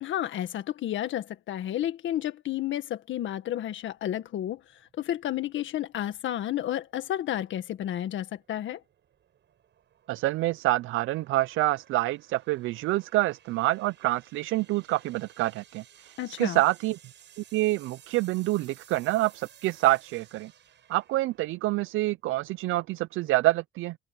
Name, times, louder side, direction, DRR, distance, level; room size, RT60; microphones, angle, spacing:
voice 1, 0.0-4.6 5.0-8.8 16.2-16.6, left 12 dB, 75° left, 1.7 m, -31 dB
sound 1, 3.7-22.9, right 9 dB, 65° right, 7.6 m, -58 dB
voice 2, 10.1-17.0 17.4-20.5 20.9-24.0, right 17 dB, 85° right, 0.4 m, -27 dB
cardioid pair, 90°, 20 cm